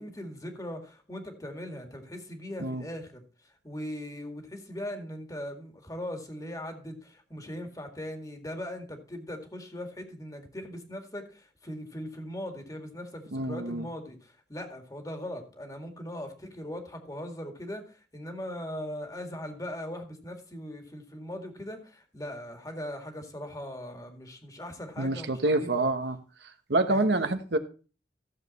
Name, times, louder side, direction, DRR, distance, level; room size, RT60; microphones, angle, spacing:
voice 1, 0.0-3.2 3.6-25.9 26.8-27.4, left 1 dB, 20° left, 5 dB, 2.0 m, -40 dB
voice 2, 13.3-13.9 25.0-26.2 26.7-27.6, right 2 dB, 70° right, 8 dB, 1.1 m, -27 dB
14.5 x 7.4 x 4.1 m, 0.36 s
head